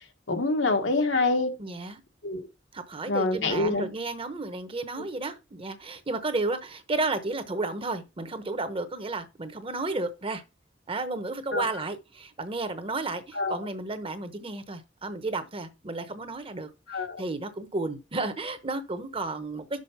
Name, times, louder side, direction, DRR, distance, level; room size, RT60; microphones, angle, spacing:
voice 1, 0.3-1.5 2.2-2.5 3.1-3.9 11.5-11.6 13.3-13.5 16.9-17.2, left 3 dB, 80° left, 1.3 m, -26 dB
voice 2, 1.6-2.0 2.7-10.4 10.9-19.8, right 2 dB, 30° right, 0.9 m, -32 dB
6.3 x 4.8 x 5.6 m
head